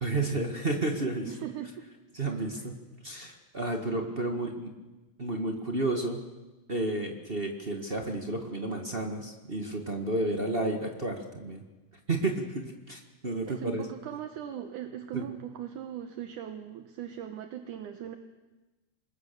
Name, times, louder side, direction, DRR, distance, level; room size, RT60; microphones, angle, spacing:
voice 1, 0.0-1.3 2.1-2.8 3.0-4.7 5.2-6.2 6.7-11.6 12.1-13.8 15.1-15.2, right 2 dB, 35° right, 3 dB, 0.9 m, -31 dB
voice 2, 1.3-1.9 2.6-2.7 3.9-4.6 13.5-18.2, right 10 dB, 70° right, 7 dB, 2.5 m, -40 dB
26.5 x 21.5 x 6.9 m, 1.1 s
omnidirectional pair, 3.9 m